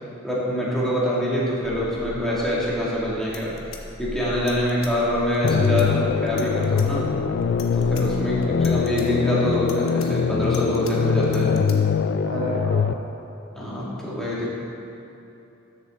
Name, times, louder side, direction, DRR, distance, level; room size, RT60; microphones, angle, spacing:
voice 1, 0.2-3.5 4.0-7.1 7.7-11.6 13.5-14.5, equal, ahead, -8 dB, 2.4 m, -25 dB
sound 1, 1.6-8.7, equal, 30° right, 0.8 m, -40 dB
sound 2, 2.9-3.0 3.2-4.9 5.3-5.9 6.3-6.9 7.4-8.0 8.4-9.1 9.5-10.9 11.2-11.8, left 8 dB, 70° left, 1.0 m, -42 dB
sound 3, 5.4-12.9, left 6 dB, 55° left, 0.4 m, -22 dB
voice 2, 8.1-8.6 12.2-13.1, right 1 dB, 90° right, -5 dB, 2.5 m, -32 dB
13.5 x 7.2 x 3.9 m, 2.9 s
head